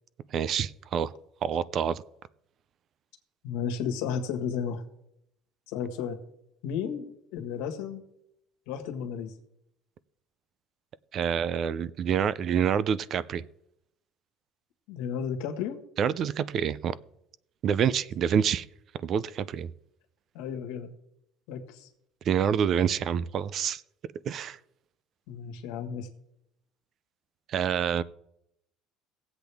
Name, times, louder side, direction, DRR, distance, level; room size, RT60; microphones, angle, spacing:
voice 1, 0.3-1.1 1.4-2.0 11.1-13.4 16.0-16.9 17.6-18.7 19.0-19.7 22.3-23.8 24.3-24.6 27.5-28.0, right 8 dB, 35° right, 19 dB, 0.4 m, -27 dB
voice 2, 3.4-4.8 5.7-6.2 6.6-8.0 8.7-9.3 14.9-15.8 20.3-20.9 21.5-21.9 25.3-26.1, left 7 dB, 90° left, 5 dB, 1.6 m, -33 dB
18.5 x 8.0 x 3.5 m, 0.79 s
cardioid pair, 165°, 0 cm